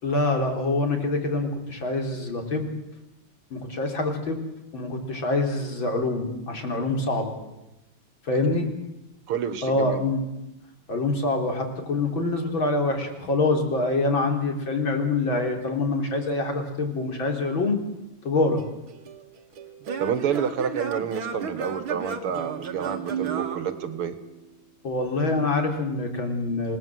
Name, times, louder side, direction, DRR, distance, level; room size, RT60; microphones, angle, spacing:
voice 1, 0.0-2.7 3.5-4.4 4.7-7.4 8.2-8.7 9.6-10.2 10.9-17.8 18.2-18.6 24.8-26.8, left 2 dB, 60° left, 3 dB, 4.4 m, -25 dB
voice 2, 9.3-10.0 20.0-24.1, right 7 dB, 85° right, 11 dB, 2.5 m, -29 dB
Singing / Plucked string instrument, 18.6-24.4, right 6 dB, 70° right, 2.6 m, -34 dB
28.0 x 19.0 x 7.8 m, 0.94 s
omnidirectional pair, 2.4 m